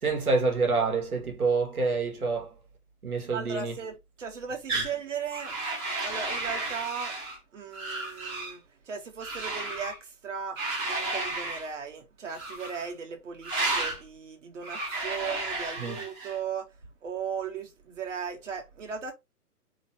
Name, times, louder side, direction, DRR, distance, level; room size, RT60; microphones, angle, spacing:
voice 1, 0.0-2.5 3.0-3.8 15.8-16.0, right 4 dB, 70° right, 2.0 m, -27 dB
voice 2, 3.3-5.7 6.0-7.1 7.5-10.6 10.9-16.7 17.0-19.1, right 6 dB, 50° right, 1.8 m, -37 dB
sound 1, 4.7-4.9 5.3-7.4 7.7-8.5 9.2-10.0 10.6-11.7 12.3-12.9 13.4-14.0 14.6-16.4, right 2 dB, 10° right, 0.7 m, -33 dB
4.5 x 3.7 x 2.8 m
figure-of-eight pair, 125°, 46 cm